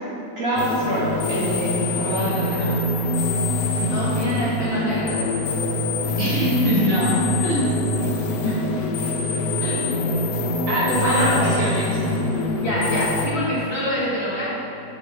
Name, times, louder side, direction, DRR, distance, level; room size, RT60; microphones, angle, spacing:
voice 1, 0.4-2.7 6.2-7.7 10.7-11.9, right 1 dB, 55° right, -7 dB, 1.7 m, -24 dB
sound 1, 0.6-13.3, left 2 dB, 90° left, 1.3 m, -24 dB
voice 2, 3.8-5.2 8.4-8.5 9.6-10.1 10.8-11.5 12.6-14.6, left 1 dB, 40° left, -9 dB, 2.0 m, -26 dB
6.9 x 5.3 x 4.7 m, 2.8 s
omnidirectional pair, 1.8 m